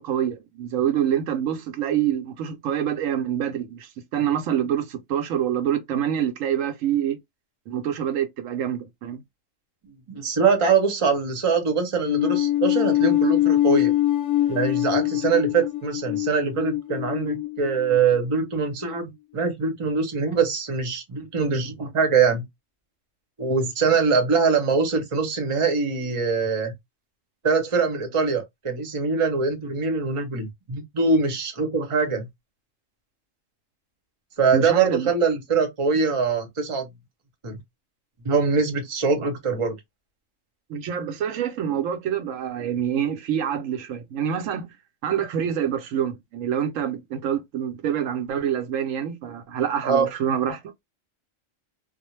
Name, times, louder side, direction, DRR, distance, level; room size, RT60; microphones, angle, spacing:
voice 1, 0.0-7.2 7.7-9.2 21.5-21.7 34.5-35.1 40.7-44.7 45.0-50.6, right 9 dB, 85° right, 1.0 m, -26 dB
voice 2, 10.1-13.9 14.5-22.4 23.4-26.7 27.4-32.3 34.4-36.9 37.4-37.6 38.2-39.7 49.8-50.1, right 5 dB, 30° right, 0.7 m, -23 dB
sound 1, 12.1-18.5, left 14 dB, 80° left, 1.0 m, -23 dB
2.4 x 2.1 x 3.0 m
omnidirectional pair, 1.3 m